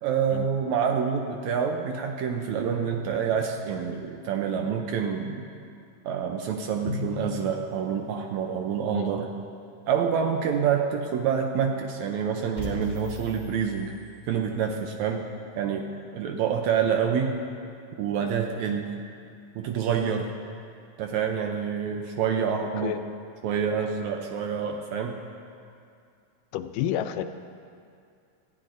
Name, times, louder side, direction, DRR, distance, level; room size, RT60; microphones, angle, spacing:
voice 1, 0.0-5.5 6.0-9.3 9.9-13.9 14.3-15.3 15.6-15.9 16.1-17.3 18.0-18.9 19.6-20.3 21.0-23.0 23.4-25.2, right 7 dB, 75° right, 3 dB, 1.8 m, -27 dB
Drum, 6.9-8.6, left 6 dB, 65° left, 2.2 m, -37 dB
sound 1, 12.6-14.6, left 1 dB, 40° right, 0.5 m, -38 dB
voice 2, 26.5-27.2, left 11 dB, 85° left, 9 dB, 2.2 m, -29 dB
19.0 x 13.5 x 2.6 m, 2.4 s
omnidirectional pair, 3.8 m